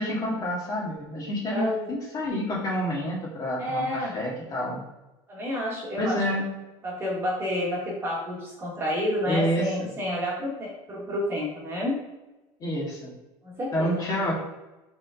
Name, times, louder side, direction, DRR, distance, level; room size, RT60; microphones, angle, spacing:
voice 1, 0.0-4.8 6.0-6.5 9.3-9.6 12.6-13.1 13.7-14.3, equal, 30° left, -4 dB, 1.9 m, -28 dB
voice 2, 1.5-1.9 3.6-4.2 5.3-6.4 6.8-12.0 13.4-14.2, left 1 dB, 20° right, -4 dB, 1.9 m, -29 dB
5.3 x 3.8 x 5.2 m, 1.0 s
cardioid pair, 165°, 11 cm